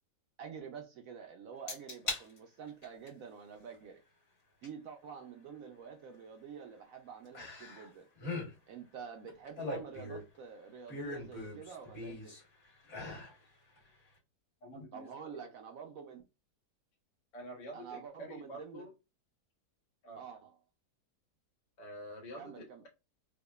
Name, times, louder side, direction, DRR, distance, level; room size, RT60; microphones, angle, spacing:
voice 1, 0.4-4.0 4.6-8.1 8.7-12.4 14.9-16.2 17.7-18.9 20.1-20.6 22.4-22.8, right 7 dB, 70° right, 0.9 m, -48 dB
sound 1, 1.7-2.2 2.7-3.1 4.6-4.7 7.3-7.9 8.2-8.5 9.3-10.4 10.9-12.4 12.8-13.3 13.8-13.9, left 2 dB, 45° left, 1.8 m, -40 dB
voice 2, 14.6-15.5 17.3-18.9 20.0-20.2 21.8-22.9, equal, 85° left, 1.7 m, -48 dB
4.8 x 2.2 x 2.3 m
omnidirectional pair, 1.8 m